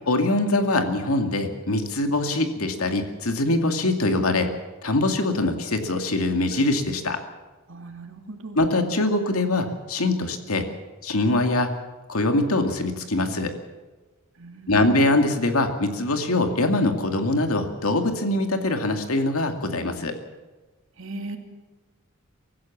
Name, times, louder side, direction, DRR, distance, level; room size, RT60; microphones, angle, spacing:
voice 1, 0.1-4.5 4.8-7.2 8.6-10.7 11.0-11.7 12.1-13.5 14.7-20.1, left 2 dB, 80° left, 5 dB, 2.3 m, -23 dB
voice 2, 7.7-8.6 14.4-15.0 21.0-21.4, right 2 dB, 60° right, 4 dB, 2.7 m, -38 dB
24.0 x 15.0 x 7.3 m, 1.2 s
head